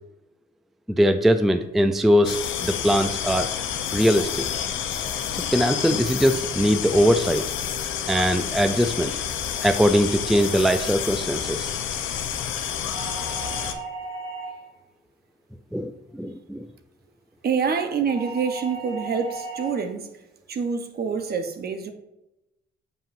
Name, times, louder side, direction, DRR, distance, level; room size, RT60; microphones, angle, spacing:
voice 1, 0.9-3.5 3.9-4.4 5.5-7.4 8.1-9.1 9.6-11.7 15.7-16.7, equal, ahead, 9 dB, 0.3 m, -21 dB
sound 1, 2.2-13.7, left 8 dB, 85° left, 0.7 m, -29 dB
sound 2, 12.9-14.8 18.1-19.9, right 3 dB, 15° right, 1.4 m, -36 dB
voice 2, 17.4-20.1 20.5-21.9, right 6 dB, 50° right, 7 dB, 0.8 m, -26 dB
7.2 x 5.4 x 2.6 m, 0.92 s
cardioid pair, 90°, 20 cm